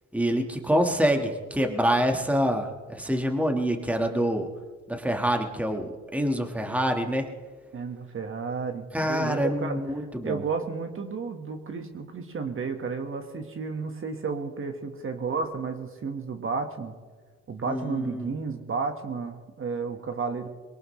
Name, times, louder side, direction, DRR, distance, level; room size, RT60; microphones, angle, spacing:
voice 1, 0.1-4.5 4.9-7.3 8.9-10.4 17.7-18.3, equal, 5° right, 4 dB, 1.6 m, -26 dB
voice 2, 7.7-16.9 17.5-20.5, right 4 dB, 45° right, 6 dB, 1.6 m, -32 dB
22.5 x 18.0 x 3.2 m, 1.4 s
cardioid pair, 90°, 30 cm